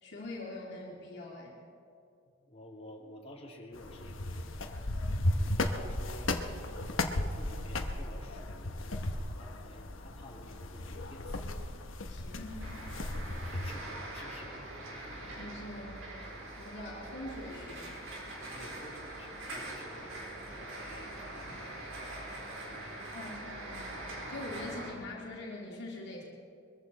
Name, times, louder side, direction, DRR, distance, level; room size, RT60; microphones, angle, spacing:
voice 1, 0.0-1.6 12.1-12.7 15.2-16.1 16.6-18.0 23.1-26.2, left 1 dB, 60° left, -3 dB, 2.9 m, -43 dB
voice 2, 2.5-4.5 5.4-6.4 6.7-9.0 9.3-11.4 13.3-14.8 18.4-20.1 20.4-22.4 22.7-23.0 24.6-24.7, left 1 dB, 30° left, -1 dB, 2.4 m, -51 dB
sound 1, 3.7-13.8, left 1 dB, 75° left, 1.1 m, -35 dB
sound 2, 12.6-24.9, right 1 dB, 90° right, 4.3 m, -43 dB
22.5 x 15.0 x 4.1 m, 2.6 s
head